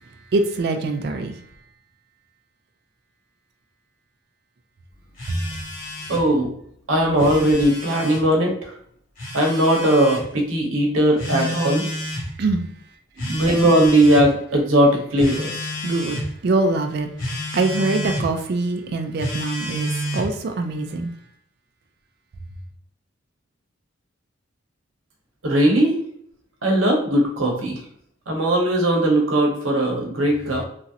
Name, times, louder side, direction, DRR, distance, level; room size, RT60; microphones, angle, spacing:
voice 1, 0.3-1.4 12.4-12.7 15.8-17.1 17.5-21.1, right 3 dB, 50° right, 0.3 m, -23 dB
Telephone, 5.2-6.3 7.0-8.2 9.2-10.2 11.2-12.3 13.2-14.3 15.2-16.3 17.2-18.3 19.2-20.3, equal, 40° left, 0.9 m, -29 dB
voice 2, 6.1-6.5 6.9-8.7 9.3-11.9 13.2-15.6 25.4-26.0 26.6-27.8 28.3-30.6, right 1 dB, 85° right, 0.9 m, -19 dB
3.0 x 2.5 x 2.7 m
head